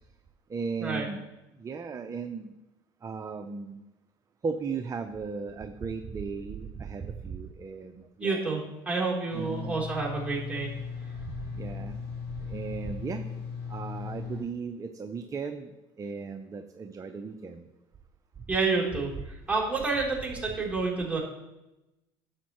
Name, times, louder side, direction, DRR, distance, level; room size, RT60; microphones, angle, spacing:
voice 1, 0.5-1.3 1.6-2.5 3.0-3.8 4.4-7.9 8.2-8.4 9.3-9.7 11.5-11.9 12.5-13.2 13.7-15.7 16.0-17.6 19.2-19.3, right 5 dB, 30° right, 7 dB, 0.7 m, -36 dB
voice 2, 8.2-10.7 18.5-21.2, right 3 dB, 10° right, -5 dB, 3.7 m, -29 dB
sound 1, 9.3-14.4, left 6 dB, 80° left, 3.5 m, -38 dB
11.5 x 7.2 x 3.1 m, 0.99 s
hypercardioid pair, 80°, 12 cm